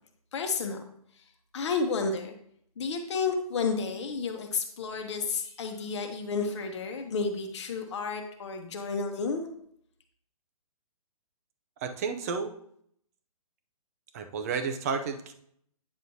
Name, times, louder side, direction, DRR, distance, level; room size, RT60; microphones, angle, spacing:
voice 1, 0.3-0.8 1.5-2.3 2.8-9.4, left 4 dB, 50° left, 4 dB, 1.1 m, -31 dB
voice 2, 11.8-12.5 14.1-15.3, right 5 dB, 25° right, 7 dB, 0.6 m, -31 dB
9.1 x 6.2 x 2.8 m, 0.67 s
hypercardioid pair, 165°, 19 cm